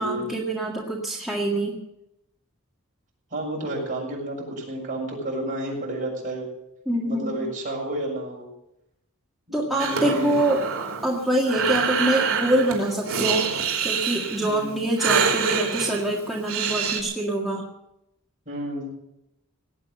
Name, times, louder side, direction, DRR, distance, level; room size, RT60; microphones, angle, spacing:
voice 1, 0.0-1.8 6.9-7.5 9.5-10.6 11.0-13.5 13.8-17.7, right 1 dB, ahead, -4 dB, 1.9 m, -25 dB
voice 2, 3.3-6.5 7.0-8.5 9.5-10.3 14.5-14.8 18.4-18.9, right 1 dB, 35° right, -2 dB, 6.8 m, -31 dB
Breathing, 9.8-17.0, right 6 dB, 65° right, 3.3 m, -26 dB
18.5 x 8.9 x 7.9 m, 0.84 s
head